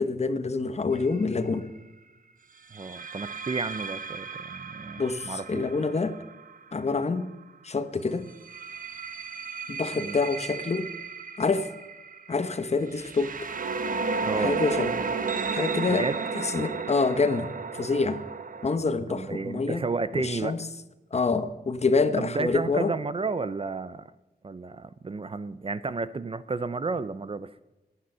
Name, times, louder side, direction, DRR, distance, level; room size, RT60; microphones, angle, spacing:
voice 1, 0.0-1.7 5.0-6.2 6.7-7.3 7.6-8.3 9.7-10.9 11.4-11.7 12.3-13.4 14.4-14.9 15.5-16.1 16.3-18.2 18.6-19.9 20.1-20.7 21.1-22.9, left 4 dB, 40° left, 11 dB, 1.0 m, -27 dB
sound 1, 0.9-1.2 2.7-7.5 8.3-18.8, right 4 dB, 55° right, 1.0 m, -34 dB
voice 2, 2.7-5.6 10.0-10.2 14.2-14.6 15.9-16.2 19.1-20.5 22.2-24.0 24.4-27.5, right 4 dB, 35° right, 15 dB, 0.5 m, -32 dB
15.5 x 10.5 x 5.5 m, 1.1 s
wide cardioid pair, 155°, 17 cm